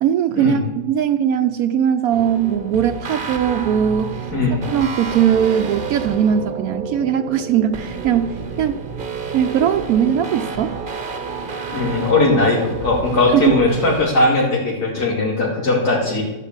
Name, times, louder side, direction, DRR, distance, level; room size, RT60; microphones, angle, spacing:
voice 1, 0.0-4.2 4.5-8.8 9.3-10.8 13.3-13.6, right 9 dB, 80° right, 8 dB, 1.1 m, -19 dB
sound 1, 2.1-14.1, right 5 dB, 40° right, 1.1 m, -30 dB
voice 2, 4.3-4.6 11.7-16.2, left 2 dB, 85° left, -3 dB, 3.0 m, -18 dB
12.0 x 8.3 x 7.3 m, 1.1 s
omnidirectional pair, 1.6 m